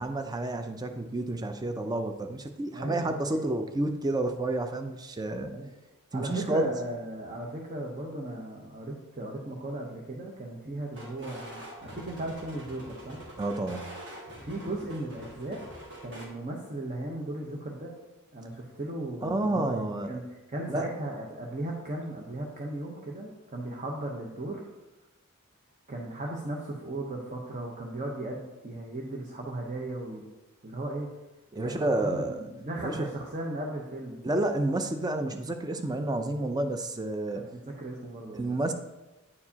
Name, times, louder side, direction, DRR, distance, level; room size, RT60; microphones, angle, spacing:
voice 1, 0.0-5.5 6.1-6.7 13.4-14.0 19.2-20.1 20.7-20.9 31.5-32.4 32.8-33.1 34.2-37.4 38.3-38.7, right 2 dB, 20° right, 6 dB, 0.4 m, -30 dB
voice 2, 2.7-3.2 5.5-5.7 6.1-13.2 14.4-15.6 16.0-17.9 18.3-19.8 20.1-20.2 20.5-24.6 25.9-30.2 30.6-31.1 31.6-34.2 37.3-38.6, right 1 dB, 35° right, -1 dB, 0.8 m, -36 dB
sound 1, 10.9-16.3, right 1 dB, 55° right, 1.3 m, -45 dB
9.6 x 4.7 x 2.8 m, 1.0 s
head